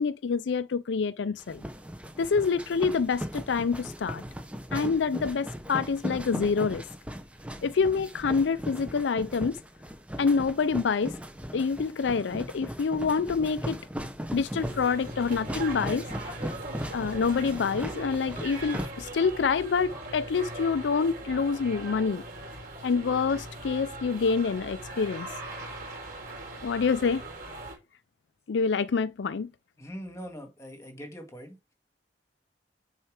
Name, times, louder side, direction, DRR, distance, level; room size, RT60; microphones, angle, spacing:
voice 1, 0.0-1.6 2.2-4.2 4.7-6.8 7.6-9.6 10.2-11.1 11.5-13.8 14.3-16.0 16.9-22.2 22.8-25.3 26.6-27.2 28.5-29.5, left 5 dB, 85° left, 0.4 m, -27 dB
sound 1, 1.4-18.8, equal, 5° right, 1.0 m, -38 dB
sound 2, 14.6-27.7, right 1 dB, 50° right, 3.8 m, -40 dB
voice 2, 29.8-31.6, equal, 15° left, 2.0 m, -42 dB
9.4 x 4.6 x 4.8 m
head